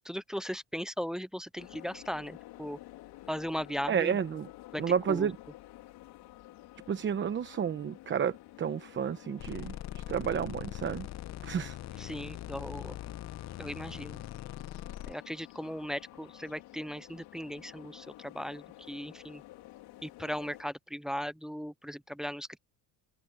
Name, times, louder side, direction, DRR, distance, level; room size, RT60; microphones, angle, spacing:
voice 1, 0.0-2.8 3.3-4.2 4.7-4.8 5.1-5.3 12.0-13.0 13.6-14.2 15.1-19.4 20.0-22.6, equal, ahead, 0.3 m, -38 dB
sound 1, 1.6-20.6, left 17 dB, 80° left, 3.6 m, -51 dB
voice 2, 3.9-4.5 4.8-5.4 6.9-11.1 11.4-11.8, right 7 dB, 30° right, 0.9 m, -31 dB
sound 2, 9.4-15.1, left 13 dB, 45° left, 0.8 m, -42 dB
cardioid pair, 135°, 39 cm